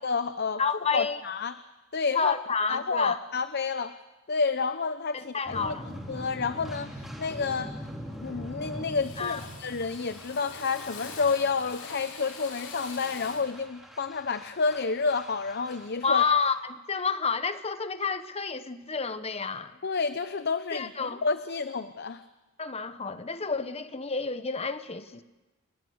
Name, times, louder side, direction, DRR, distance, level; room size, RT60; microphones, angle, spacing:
voice 1, 0.0-0.6 0.9-1.5 1.9-2.3 2.7-3.9 4.3-5.7 6.1-7.7 8.2-16.2 19.8-20.9 21.2-22.2, left 4 dB, 50° left, 12 dB, 0.8 m, -29 dB
voice 2, 0.6-1.2 2.1-3.2 5.1-5.9 9.2-9.4 16.0-19.8 20.7-21.2 22.6-25.2, left 5 dB, 30° left, 11 dB, 1.1 m, -29 dB
sound 1, 5.5-16.5, equal, ahead, 4.1 m, -43 dB
Drill, 7.3-7.8 8.0-8.6 8.9-13.6, left 4 dB, 85° left, 5.9 m, -45 dB
28.5 x 22.5 x 7.9 m, 1.1 s
head